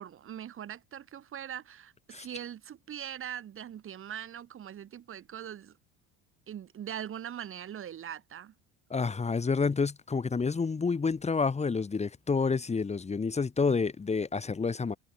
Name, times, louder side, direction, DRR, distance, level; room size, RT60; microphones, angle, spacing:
voice 1, 0.0-5.8 6.5-8.5, right 10 dB, 40° right, 5.5 m, -41 dB
voice 2, 8.9-15.0, left 4 dB, 20° left, 4.0 m, -29 dB
supercardioid pair, 110°, 32 cm